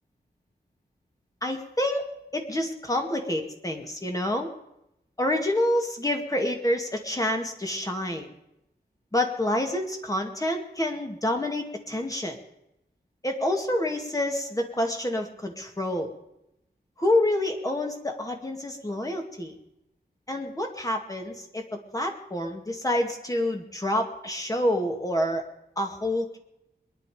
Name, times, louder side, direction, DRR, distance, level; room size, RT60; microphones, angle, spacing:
voice 1, 1.4-2.1 2.3-4.5 5.2-8.3 9.1-12.4 13.2-16.1 17.0-19.6 20.3-21.6 21.9-25.4 25.8-26.4, left 1 dB, 20° left, 3 dB, 2.3 m, -27 dB
22.5 x 10.5 x 5.1 m, 0.84 s
wide cardioid pair, 100°, 18 cm